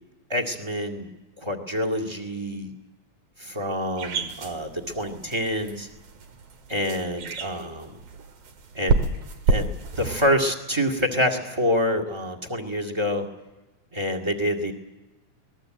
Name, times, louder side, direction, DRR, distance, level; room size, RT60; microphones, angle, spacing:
voice 1, 0.3-1.1 1.4-2.7 3.4-5.9 6.7-8.0 8.7-9.0 9.5-13.3 13.9-14.7, equal, 10° right, 5 dB, 1.7 m, -27 dB
sound 1, 4.0-10.3, right 4 dB, 80° right, 3.4 m, -29 dB
24.0 x 20.5 x 7.8 m, 1.1 s
omnidirectional pair, 3.3 m